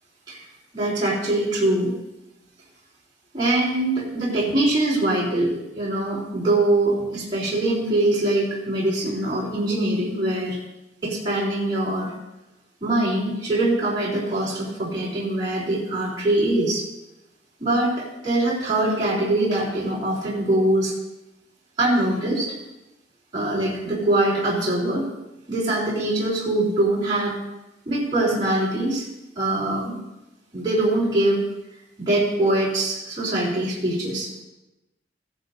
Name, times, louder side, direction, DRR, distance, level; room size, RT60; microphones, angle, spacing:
voice 1, 0.7-1.9 3.3-10.6 11.0-12.1 12.8-16.8 17.6-20.9 21.8-22.5 23.3-25.0 25.5-27.3 27.9-29.1 29.4-30.0 30.5-31.4 32.0-34.3, right 1 dB, 25° right, -8 dB, 3.6 m, -23 dB
15.5 x 11.5 x 2.7 m, 0.97 s
head